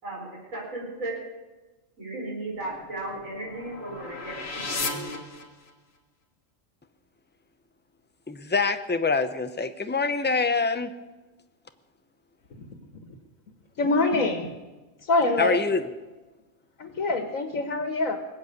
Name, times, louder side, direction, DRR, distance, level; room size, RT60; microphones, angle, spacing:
voice 1, 0.0-1.2 2.0-4.4 4.7-5.2, right 2 dB, 85° right, -4 dB, 5.0 m, -35 dB
sound 1, 2.6-6.0, left 3 dB, 55° left, 1.8 m, -36 dB
voice 2, 8.3-10.9 15.4-15.9, left 4 dB, 10° left, 9 dB, 0.7 m, -25 dB
voice 3, 13.8-14.5 15.1-15.6 16.8-18.2, left 2 dB, 90° left, 7 dB, 1.8 m, -24 dB
20.5 x 8.2 x 8.2 m, 1.2 s
omnidirectional pair, 1.4 m